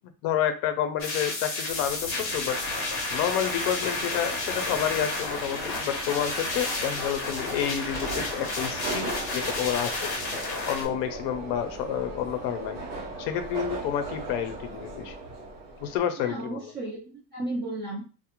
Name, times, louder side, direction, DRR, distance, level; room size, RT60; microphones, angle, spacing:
voice 1, 0.2-2.6 3.1-10.1 10.7-12.8 13.2-15.2 15.8-16.7, left 10 dB, 60° left, 8 dB, 0.5 m, -29 dB
sound 1, 1.0-10.8, left 2 dB, 30° left, 0.7 m, -31 dB
Subway metro underground, 1.7-16.0, right 2 dB, 65° right, 1.0 m, -39 dB
voice 2, 16.2-18.0, right 2 dB, 25° right, -4 dB, 0.4 m, -34 dB
2.3 x 2.1 x 2.9 m, 0.36 s
cardioid pair, 170°, 47 cm